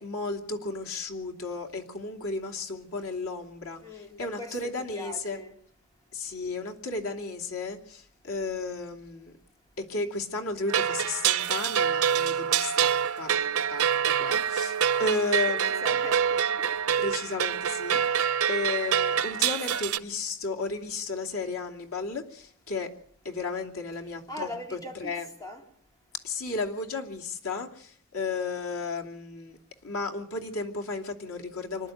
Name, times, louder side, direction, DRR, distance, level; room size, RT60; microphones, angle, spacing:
voice 1, 0.0-5.4 6.1-9.4 9.8-12.9 13.2-15.9 16.9-18.2 18.5-22.9 23.2-25.3 26.2-29.6 29.8-31.9, left 3 dB, 85° left, 2.8 m, -34 dB
voice 2, 3.8-5.5 15.5-16.8 24.3-25.6 31.8-31.9, left 1 dB, 15° left, 3.9 m, -41 dB
sound 1, 10.7-20.0, right 8 dB, 85° right, 0.8 m, -26 dB
25.5 x 12.0 x 9.3 m
head